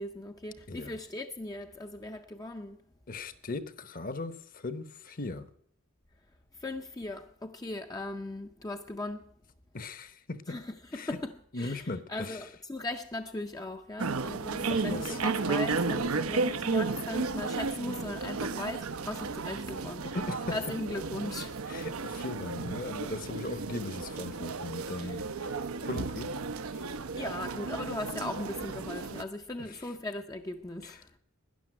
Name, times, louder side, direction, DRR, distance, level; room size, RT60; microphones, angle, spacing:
voice 1, 0.0-2.8 6.6-9.2 10.5-20.2 20.5-21.6 24.9-25.2 27.2-31.0, left 2 dB, 15° left, 0.6 m, -38 dB
voice 2, 3.1-5.5 9.7-10.6 10.9-11.2 11.5-12.4 14.7-15.2 20.1-20.6 21.7-25.5 25.8-26.3 26.7-26.9 30.8-31.2, left 2 dB, 40° left, 0.9 m, -38 dB
sound 1, 14.0-29.2, right 4 dB, 85° right, 0.8 m, -33 dB
12.5 x 10.5 x 8.8 m
head